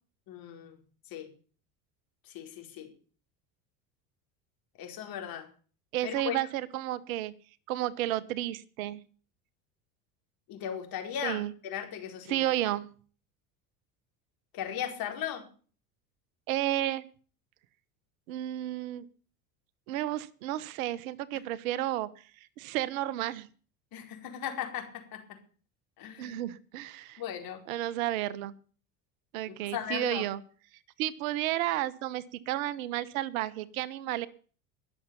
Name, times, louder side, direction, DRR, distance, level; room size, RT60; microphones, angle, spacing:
voice 1, 0.3-0.8 1.1-1.3 2.2-2.9 4.8-5.5 6.0-6.4 10.5-12.5 14.5-15.5 23.9-25.2 26.0-26.4 27.2-27.6 29.7-30.2, left 9 dB, 55° left, 4 dB, 4.8 m, -37 dB
voice 2, 5.9-7.3 7.7-9.0 11.2-11.5 12.3-12.9 16.5-17.0 18.3-19.0 19.9-22.1 22.6-23.5 26.2-27.2 27.7-28.5 29.3-30.4 31.0-34.3, right 14 dB, 70° right, 19 dB, 1.1 m, -32 dB
21.5 x 7.2 x 7.0 m, 0.42 s
hypercardioid pair, 75°, 43 cm